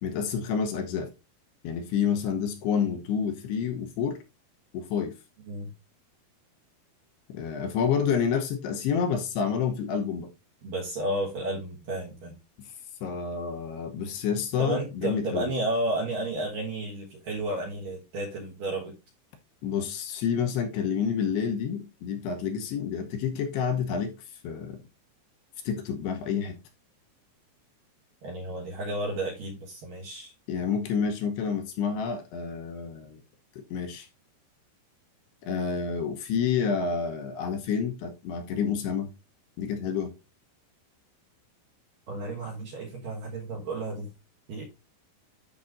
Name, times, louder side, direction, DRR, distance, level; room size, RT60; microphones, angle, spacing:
voice 1, 0.0-1.1 1.6-4.2 4.7-5.2 7.3-10.3 12.6-12.7 13.0-15.5 19.6-24.2 24.4-24.8 25.6-26.6 30.5-33.2 33.6-34.1 35.4-39.1 39.6-40.1, left 7 dB, 75° left, 2.6 m, -29 dB
voice 2, 10.6-12.4 14.6-18.9 28.2-30.3 42.1-44.1 44.5-44.6, right 1 dB, 65° right, 2.4 m, -32 dB
12.5 x 5.4 x 2.5 m
omnidirectional pair, 5.5 m